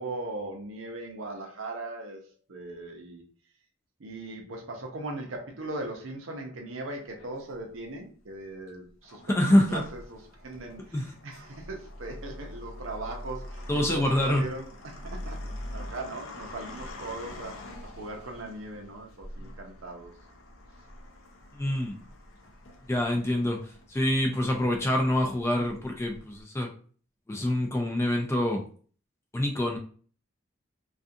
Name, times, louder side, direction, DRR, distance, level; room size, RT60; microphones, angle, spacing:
voice 1, 0.0-3.2 4.0-10.2 10.4-20.1, right 2 dB, 75° right, 2 dB, 0.6 m, -39 dB
sound 1, 7.2-7.9 8.6-26.4, left 1 dB, 80° left, 0.5 m, -44 dB
voice 2, 9.2-9.8 10.9-11.1 13.7-14.5 21.5-22.0 22.9-26.7 27.3-28.6 29.3-29.8, left 1 dB, 15° left, 2 dB, 0.3 m, -26 dB
2.4 x 2.3 x 2.6 m, 0.43 s
head